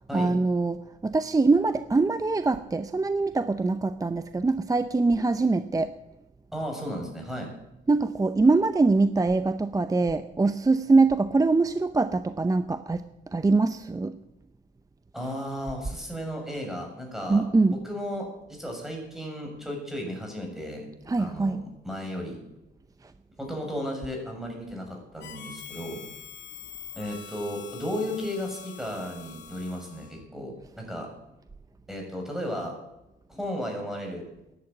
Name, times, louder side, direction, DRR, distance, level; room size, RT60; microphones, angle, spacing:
voice 1, 0.1-5.9 7.9-13.0 13.3-14.1 17.3-17.8 21.1-21.6, right 3 dB, 15° right, 11 dB, 0.7 m, -23 dB
voice 2, 6.5-7.5 15.1-17.4 17.7-20.9 21.2-21.6 21.8-22.4 23.4-26.0 27.0-31.1 31.9-32.7 33.3-34.2, equal, ahead, 1 dB, 6.9 m, -34 dB
Harmonica, 25.2-30.2, left 8 dB, 60° left, 2.0 m, -45 dB
13.5 x 11.0 x 8.8 m, 0.92 s
cardioid pair, 90°, 20 cm